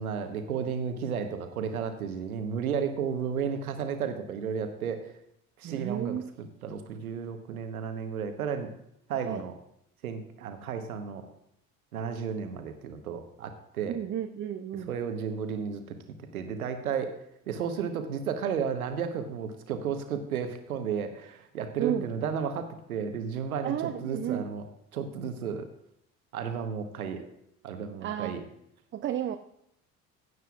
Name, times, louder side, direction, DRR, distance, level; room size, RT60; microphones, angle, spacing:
voice 1, 0.0-5.1 5.6-6.2 6.6-8.7 9.1-9.5 10.0-11.3 11.9-14.0 14.7-16.0 16.3-17.2 17.5-24.6 24.9-25.7 26.3-27.3 27.6-28.4, right 7 dB, 80° right, 8 dB, 1.1 m, -33 dB
voice 2, 5.6-6.3 9.2-9.4 13.9-14.9 21.8-22.1 23.6-24.5 28.0-28.4 28.9-29.4, right 10 dB, 30° right, 10 dB, 0.5 m, -32 dB
15.5 x 9.2 x 2.4 m, 0.76 s
figure-of-eight pair, 55°, 43 cm